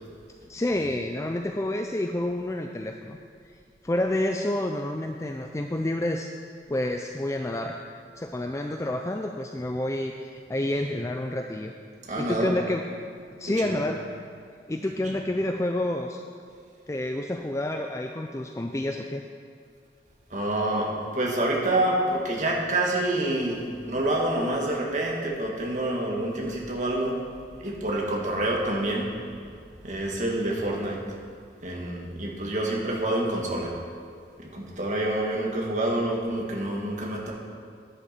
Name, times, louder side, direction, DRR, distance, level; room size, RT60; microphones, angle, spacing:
voice 1, 0.5-3.2 3.8-6.3 6.7-7.8 8.2-11.7 12.2-12.8 13.4-14.0 14.7-16.2 16.9-19.2 27.6-27.7, left 1 dB, 15° left, 4 dB, 0.4 m, -29 dB
voice 2, 12.1-12.6 13.5-13.8 14.8-15.2 20.3-27.2 27.6-29.1 29.8-31.0 31.6-33.7 34.4-37.3, right 1 dB, 45° right, -2 dB, 1.7 m, -27 dB
11.0 x 10.0 x 4.3 m, 2.3 s
head